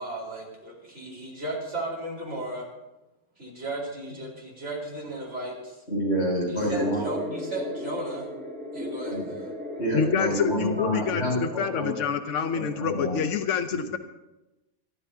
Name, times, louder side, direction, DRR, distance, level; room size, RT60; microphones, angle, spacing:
voice 1, 0.0-2.7 3.4-5.8 6.5-8.3 8.7-9.5, right 1 dB, 75° right, -3 dB, 4.5 m, -35 dB
voice 2, 5.9-7.0 9.1-9.2 9.8-11.9 12.5-13.2 13.7-13.8, equal, 65° left, -4 dB, 7.0 m, -28 dB
sound 1, 6.7-11.7, left 1 dB, 10° right, 3.8 m, -36 dB
voice 3, 9.9-14.0, left 7 dB, 85° left, 9 dB, 1.1 m, -27 dB
26.5 x 12.5 x 2.8 m, 1.0 s
omnidirectional pair, 1.2 m